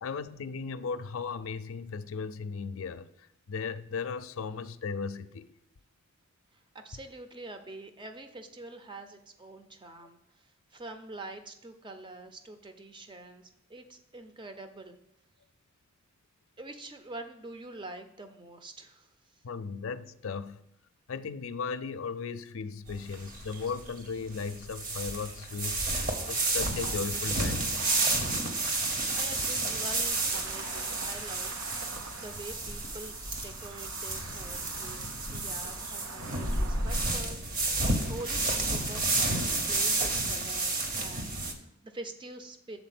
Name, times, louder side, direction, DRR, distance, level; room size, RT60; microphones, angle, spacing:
voice 1, 0.0-3.1 3.5-5.5 19.4-20.6 21.1-27.6, left 5 dB, 70° left, 0.4 m, -36 dB
voice 2, 6.8-10.2 10.7-15.0 16.6-19.1 28.8-31.5 32.2-42.8, right 2 dB, 20° right, 0.6 m, -45 dB
sound 1, 22.9-41.5, right 2 dB, 40° right, 1.0 m, -31 dB
sound 2, 27.7-37.2, right 4 dB, 85° right, 0.7 m, -47 dB
7.1 x 4.2 x 5.8 m
head